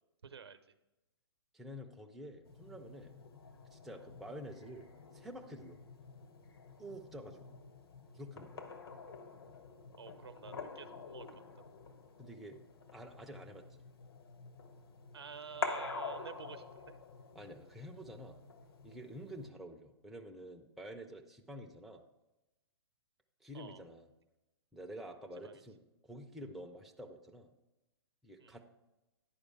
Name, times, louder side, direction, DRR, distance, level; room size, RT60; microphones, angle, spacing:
voice 1, 0.2-0.6 10.0-11.7 15.1-17.0 23.5-23.8 25.4-25.6 28.4-28.6, right 6 dB, 70° right, 11 dB, 0.7 m, -50 dB
voice 2, 1.5-3.1 3.7-5.8 6.8-7.6 8.1-8.6 12.2-12.6 12.9-13.8 17.3-18.4 18.8-22.0 23.4-24.1 24.7-25.8 26.0-27.5 28.2-28.7, equal, ahead, 2 dB, 0.4 m, -49 dB
sound 1, 2.4-19.5, left 4 dB, 60° left, 1.0 m, -47 dB
10.0 x 5.0 x 4.7 m, 0.99 s
figure-of-eight pair, 120°, 14 cm